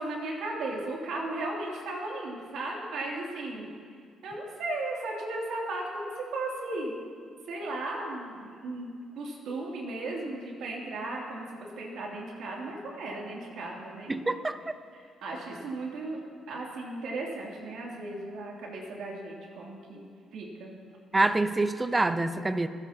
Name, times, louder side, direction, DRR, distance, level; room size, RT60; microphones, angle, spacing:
voice 1, 0.0-3.7 4.2-7.0 7.5-14.1 14.9-16.2 16.5-20.7, right 2 dB, 80° right, -2 dB, 2.9 m, -36 dB
voice 2, 14.1-14.6 21.1-22.7, right 2 dB, 20° right, 10 dB, 0.7 m, -26 dB
28.0 x 10.5 x 2.9 m, 2.1 s
cardioid pair, 90°, 0 cm